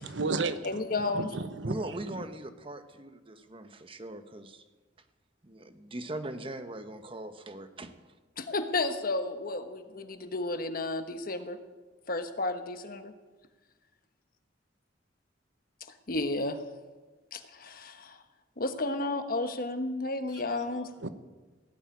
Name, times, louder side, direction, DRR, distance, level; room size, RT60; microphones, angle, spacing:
voice 1, 0.0-0.6 1.0-2.0 20.3-20.4 21.0-21.1, right 3 dB, 85° right, 1.0 m, -32 dB
voice 2, 0.6-1.3 8.4-11.6 12.1-13.1 16.1-16.6 17.3-18.2 18.6-20.9, left 2 dB, 50° left, 1.2 m, -32 dB
voice 3, 1.6-4.6 5.4-7.9, right 1 dB, 30° right, 1.0 m, -40 dB
16.5 x 8.1 x 9.6 m
head